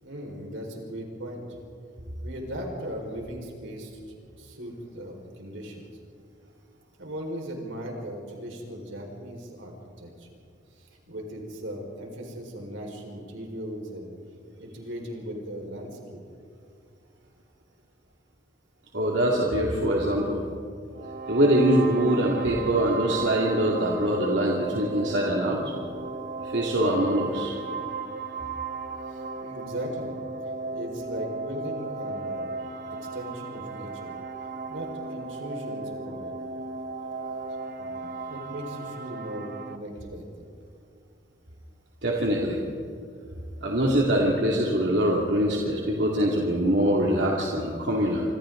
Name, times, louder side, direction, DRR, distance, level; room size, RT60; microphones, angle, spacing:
voice 1, 0.0-1.4 2.2-5.8 7.0-10.3 10.7-14.1 14.5-16.2 29.1-30.2 30.7-34.1 34.7-36.3 37.8-40.5, equal, 85° right, 0 dB, 4.9 m, -38 dB
voice 2, 18.9-20.4 21.3-25.6 26.4-27.6 42.0-42.6 43.6-48.2, right 1 dB, 65° right, -3 dB, 2.4 m, -23 dB
sound 1, 20.9-39.8, right 3 dB, 50° right, 0.9 m, -35 dB
27.0 x 26.0 x 3.9 m, 2.4 s
head